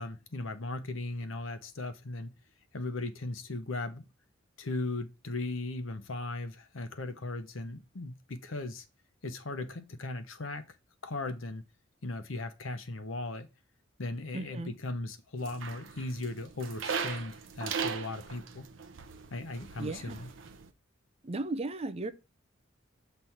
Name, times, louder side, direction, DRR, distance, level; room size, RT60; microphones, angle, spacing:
voice 1, 0.0-2.3 2.7-4.1 4.6-8.8 9.2-10.6 11.0-11.6 12.0-13.5 14.0-18.6 19.3-20.3, left 2 dB, 80° left, 0.9 m, -37 dB
voice 2, 14.3-14.8 19.8-20.2 21.2-22.1, right 2 dB, 30° right, 0.6 m, -35 dB
sound 1, 15.4-20.7, right 6 dB, 70° right, 0.7 m, -39 dB
6.2 x 3.4 x 5.8 m
head